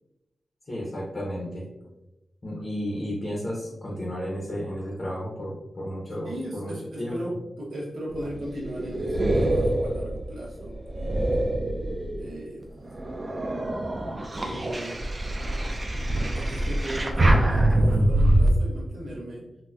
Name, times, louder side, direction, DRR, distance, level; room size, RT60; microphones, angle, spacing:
voice 1, 0.7-1.6 2.4-7.2, equal, 30° left, -4 dB, 0.6 m, -33 dB
voice 2, 6.2-11.4 12.2-12.8 14.3-15.0 16.3-19.4, right 1 dB, 85° right, -5 dB, 1.0 m, -37 dB
wind gurgle, 8.1-12.3 12.8-18.5, right 1 dB, 25° right, 0.4 m, -24 dB
4.0 x 2.1 x 2.3 m, 0.97 s
wide cardioid pair, 155°, 0 cm